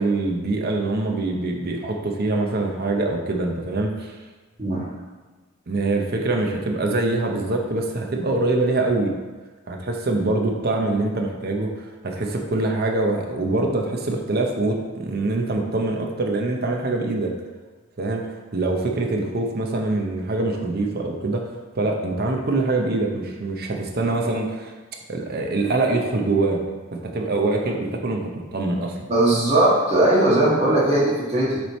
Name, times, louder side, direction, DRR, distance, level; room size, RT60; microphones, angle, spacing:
voice 1, 0.0-4.2 5.7-9.1 9.7-11.7 12.0-17.3 18.0-21.4 21.7-24.7 25.1-26.6 26.9-29.0, right 2 dB, 50° right, 2 dB, 0.7 m, -24 dB
voice 2, 29.1-31.6, right 1 dB, 30° right, -6 dB, 1.5 m, -19 dB
7.4 x 3.3 x 4.1 m, 1.3 s
head